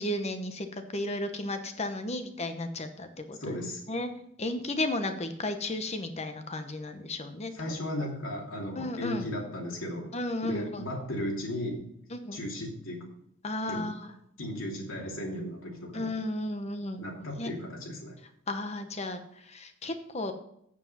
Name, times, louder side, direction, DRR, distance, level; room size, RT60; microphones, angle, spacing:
voice 1, 0.0-3.6 3.9-4.1 4.4-7.7 8.7-9.3 10.1-10.9 12.1-12.4 13.4-14.1 15.9-17.0 17.4-17.5 18.5-20.3, left 1 dB, 30° left, 8 dB, 0.9 m, -34 dB
voice 2, 3.4-3.8 7.5-10.1 10.4-11.9 12.3-13.1 13.7-13.9 14.4-16.1 17.0-18.1, left 1 dB, 65° left, -1 dB, 2.7 m, -35 dB
8.7 x 7.3 x 5.5 m, 0.73 s
head